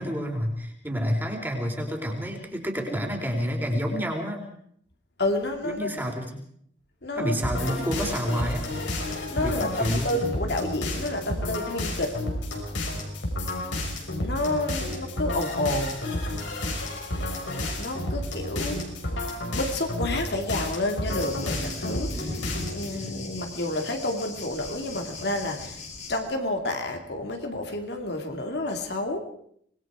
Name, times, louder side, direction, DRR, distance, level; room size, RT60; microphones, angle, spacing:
voice 1, 0.0-4.5 5.6-6.2 7.2-8.7 9.4-10.1 22.9-23.0, equal, 10° right, 1 dB, 4.2 m, -29 dB
voice 2, 5.2-6.0 7.0-7.3 9.3-12.2 14.2-16.4 17.8-18.9 19.5-25.8 26.1-29.2, left 1 dB, 60° left, 4 dB, 2.5 m, -30 dB
sound 1, 7.4-23.0, left 1 dB, 85° left, 5.8 m, -31 dB
Thunder, 21.0-26.2, left 3 dB, 40° left, 4.5 m, -39 dB
26.0 x 21.0 x 4.9 m, 0.66 s
head